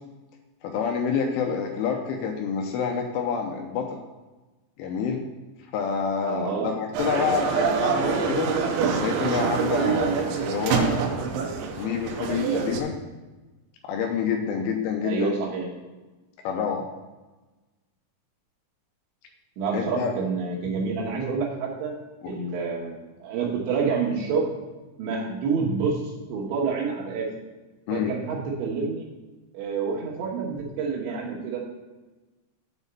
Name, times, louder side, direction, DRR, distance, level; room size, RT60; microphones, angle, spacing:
voice 1, 0.6-4.0 4.8-5.2 5.7-8.5 9.0-11.2 11.8-13.0 13.8-15.3 16.4-16.9 19.7-20.1 22.2-22.3 27.9-28.1, left 6 dB, 80° left, 2 dB, 2.9 m, -28 dB
voice 2, 6.2-6.7 7.2-7.4 15.0-15.7 19.6-22.0 22.3-24.5 25.0-26.0 26.3-27.3 27.9-29.1 29.5-31.6, right 5 dB, 70° right, -3 dB, 3.2 m, -28 dB
sound 1, 6.9-12.8, right 5 dB, 85° right, 3.4 m, -25 dB
8.0 x 4.2 x 6.7 m, 1.2 s
omnidirectional pair, 6.0 m